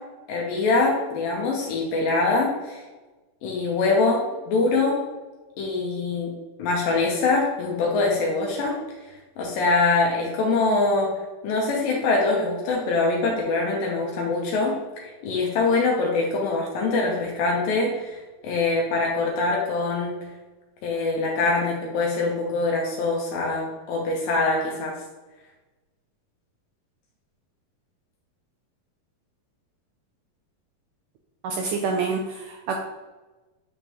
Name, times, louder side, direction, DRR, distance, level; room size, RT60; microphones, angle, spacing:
voice 1, 0.3-2.8 3.4-5.0 5.6-6.3 6.6-8.8 9.4-11.1 11.4-20.2 20.8-25.0, left 3 dB, 80° left, -1 dB, 2.5 m, -24 dB
voice 2, 31.4-32.8, right 4 dB, 80° right, 2 dB, 1.9 m, -27 dB
9.1 x 3.6 x 3.0 m, 1.2 s
omnidirectional pair, 4.1 m